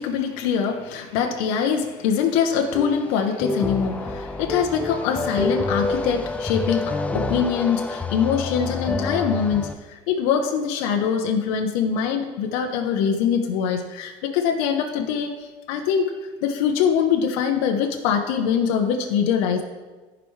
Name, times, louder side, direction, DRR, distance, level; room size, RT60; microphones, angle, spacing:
voice 1, 0.0-16.1 16.4-19.6, left 7 dB, 90° left, 4 dB, 0.9 m, -23 dB
sound 1, 2.7-9.7, left 3 dB, 10° left, 0.4 m, -28 dB
14.0 x 5.0 x 3.2 m, 1.3 s
cardioid pair, 145°, 15 cm